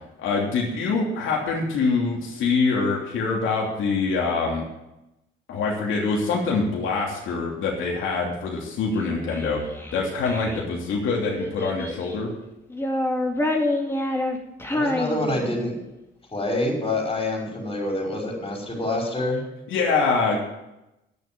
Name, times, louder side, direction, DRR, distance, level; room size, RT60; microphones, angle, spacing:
voice 1, 0.2-4.6 5.5-9.6 9.9-12.3 19.7-20.4, left 4 dB, 80° left, -2 dB, 3.0 m, -24 dB
Child speech kid speaking, 8.9-10.6 11.4-12.2 12.7-15.8, left 1 dB, 10° left, 2.2 m, -27 dB
voice 2, 14.7-15.8 16.3-19.4, left 1 dB, 25° left, -1 dB, 5.5 m, -26 dB
10.5 x 7.3 x 9.3 m, 0.92 s
cardioid pair, 90°, 20 cm